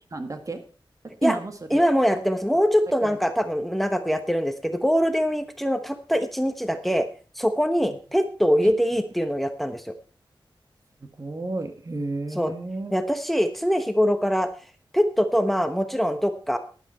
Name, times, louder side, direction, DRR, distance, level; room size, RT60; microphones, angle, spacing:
voice 1, 0.1-0.6 1.2-1.5 3.0-3.2 8.6-8.7 11.0-12.9, right 2 dB, 40° right, 7 dB, 1.7 m, -31 dB
voice 2, 1.7-7.1 7.4-9.9 12.3-12.5 12.9-14.5 14.9-16.6, equal, ahead, 8 dB, 1.2 m, -23 dB
12.0 x 10.5 x 4.4 m, 0.38 s
wide cardioid pair, 105°, 9 cm